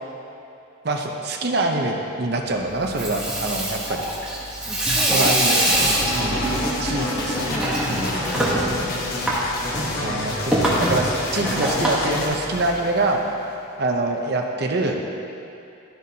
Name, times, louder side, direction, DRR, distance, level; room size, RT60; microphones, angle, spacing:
voice 1, 0.8-4.0 5.1-5.6 6.1-6.5 6.8-7.4 7.9-8.1 10.0-13.2 13.8-15.0, right 2 dB, 50° right, 2 dB, 0.7 m, -25 dB
Water tap faucet / Sink (filling or washing), 2.8-13.0, right 1 dB, 5° right, 1.1 m, -24 dB
voice 2, 4.6-5.3 5.7-6.0 6.5-9.8, equal, 25° left, -2 dB, 0.9 m, -35 dB
sound 1, 5.1-12.3, left 3 dB, 75° left, 0.6 m, -36 dB
sound 2, 5.5-13.5, left 1 dB, 50° left, 1.1 m, -30 dB
12.0 x 7.9 x 2.8 m, 2.8 s
head